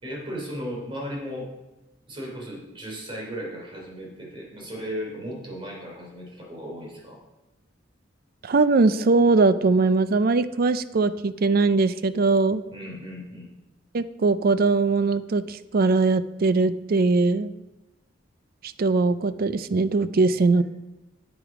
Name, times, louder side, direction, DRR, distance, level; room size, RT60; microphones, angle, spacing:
voice 1, 0.0-1.5 2.1-7.2 12.7-13.5 20.6-20.7, equal, 30° right, -1 dB, 3.1 m, -36 dB
voice 2, 8.4-12.6 13.9-17.5 18.6-20.6, right 3 dB, 50° right, 14 dB, 0.4 m, -21 dB
9.0 x 8.1 x 4.8 m, 1.0 s
head